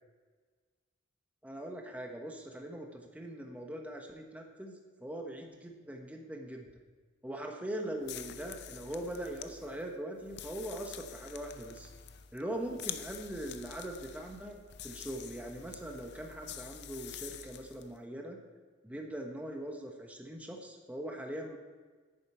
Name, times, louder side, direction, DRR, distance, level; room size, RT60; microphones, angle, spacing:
voice 1, 1.4-6.7 7.2-11.9 12.3-14.6 14.8-18.4 18.8-21.6, right 1 dB, 5° right, 1 dB, 1.1 m, -41 dB
sound 1, 8.0-17.9, left 9 dB, 55° left, 0.5 m, -47 dB
10.5 x 9.2 x 4.5 m, 1.4 s
head